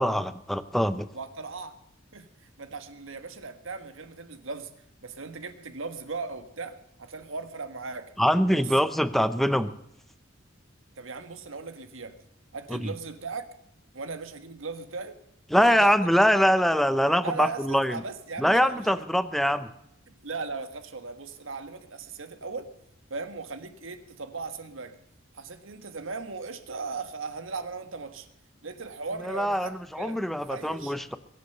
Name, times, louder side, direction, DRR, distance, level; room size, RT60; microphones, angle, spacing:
voice 1, 0.0-1.1 8.2-9.7 12.7-12.9 15.5-18.0 18.4-19.7 29.2-31.2, equal, ahead, 13 dB, 0.7 m, -23 dB
voice 2, 1.1-1.8 2.1-4.7 5.0-8.1 8.6-8.7 11.0-12.2 12.5-13.5 13.9-15.2 15.5-16.1 17.2-19.0 20.1-22.7 23.1-25.0 25.3-28.3 28.6-31.0, right 4 dB, 80° right, 9 dB, 1.5 m, -38 dB
22.0 x 8.2 x 6.7 m, 0.77 s
head